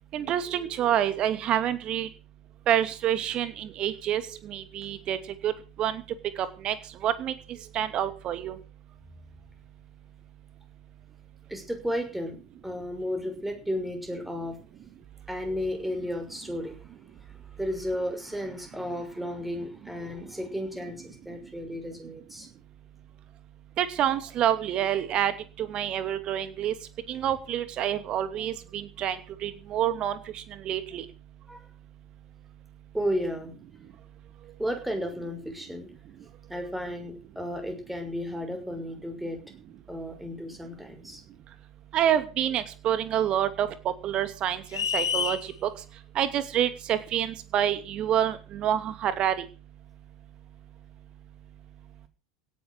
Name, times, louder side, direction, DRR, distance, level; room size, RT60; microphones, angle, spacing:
voice 1, 0.1-2.1 2.7-5.2 5.4-5.5 5.8-6.0 6.4-6.7 7.0-7.3 7.7-8.5 23.8-25.3 25.6-26.7 27.1-31.0 41.9-43.7 44.0-45.4 45.6-45.7 46.1-49.4, right 10 dB, 40° right, 11 dB, 2.7 m, -27 dB
voice 2, 11.5-12.4 12.6-14.6 15.3-16.8 17.6-22.5 31.5-31.6 32.9-33.5 34.6-35.9 36.5-39.4 39.9-41.2, equal, 5° right, 6 dB, 6.1 m, -33 dB
sound 1, 44.7-45.4, left 7 dB, 80° left, 1.8 m, -27 dB
17.0 x 10.5 x 6.4 m, 0.35 s
hypercardioid pair, 85°, 2 cm